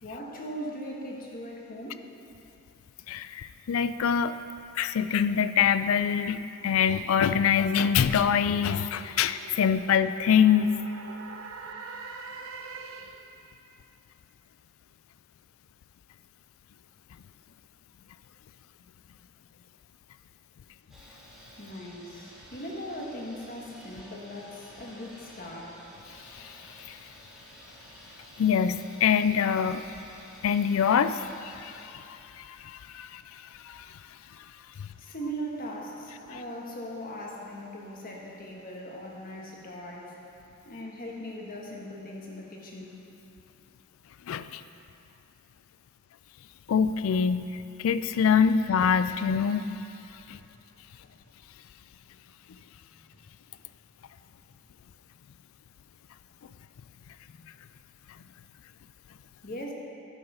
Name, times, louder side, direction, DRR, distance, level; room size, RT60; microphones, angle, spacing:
voice 1, 0.0-2.0 21.6-25.8 35.0-40.2 40.6-43.0 50.3-50.4 59.4-59.7, equal, 45° left, -2 dB, 1.3 m, -39 dB
voice 2, 3.1-4.3 4.8-10.7 26.4-26.5 26.9-27.0 28.4-29.8 30.4-33.2 33.6-33.9 44.3-44.6 46.7-49.6 50.3-50.4, left 7 dB, 75° left, 12 dB, 0.4 m, -25 dB
sound 1, 7.9-13.4, right 4 dB, 85° right, 0.7 m, -44 dB
sound 2, 20.9-31.9, equal, ahead, 2.1 m, -51 dB
11.5 x 5.6 x 5.6 m, 2.8 s
head